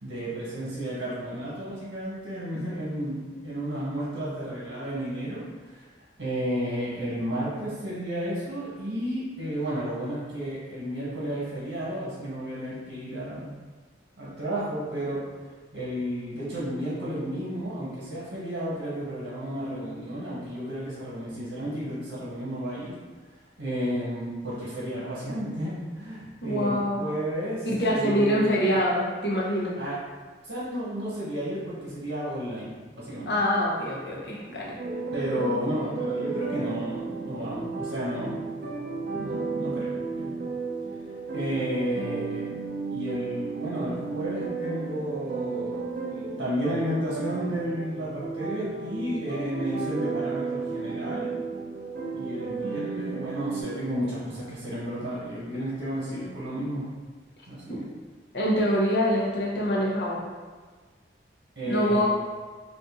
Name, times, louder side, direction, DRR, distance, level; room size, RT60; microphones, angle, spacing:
voice 1, 0.0-5.8 6.2-13.5 14.2-15.2 15.7-22.9 23.6-28.5 29.8-30.0 30.4-33.3 35.1-38.4 39.1-40.3 41.3-42.6 42.9-51.3 52.1-56.9 57.5-57.9 61.6-62.1, equal, 90° right, -9 dB, 1.1 m, -32 dB
voice 2, 26.4-27.0 27.6-29.7 33.3-34.7 57.7-57.8 58.3-60.2 61.6-62.1, equal, 65° left, -4 dB, 0.8 m, -25 dB
sound 1, 34.8-53.6, right 4 dB, 50° right, 0.5 m, -33 dB
2.6 x 2.5 x 3.7 m, 1.4 s
head